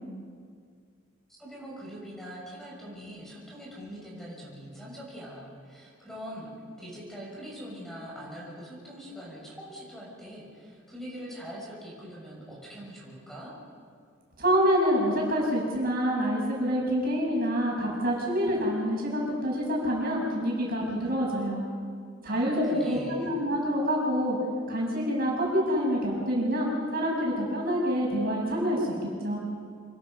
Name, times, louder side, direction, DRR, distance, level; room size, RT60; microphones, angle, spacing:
voice 1, 1.3-6.5 6.8-13.5 22.3-23.3, equal, ahead, -5 dB, 6.5 m, -43 dB
voice 2, 14.4-21.6 22.2-24.4 24.7-28.9 29.2-29.4, equal, 50° right, -3 dB, 6.7 m, -27 dB
27.0 x 22.5 x 5.5 m, 2.1 s
head